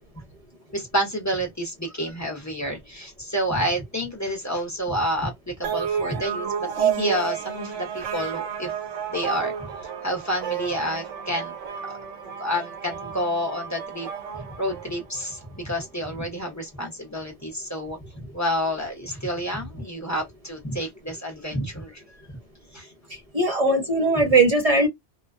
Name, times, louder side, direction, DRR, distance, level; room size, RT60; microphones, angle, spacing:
voice 1, 0.7-8.7 9.1-9.7 10.0-11.5 12.2-14.1 14.3-22.0 22.7-22.9, equal, 15° left, 0.7 m, -29 dB
sound 1, 5.6-15.4, right 8 dB, 85° right, 1.0 m, -31 dB
voice 2, 23.3-24.9, right 2 dB, 35° right, 0.7 m, -19 dB
2.4 x 2.2 x 2.4 m
omnidirectional pair, 1.2 m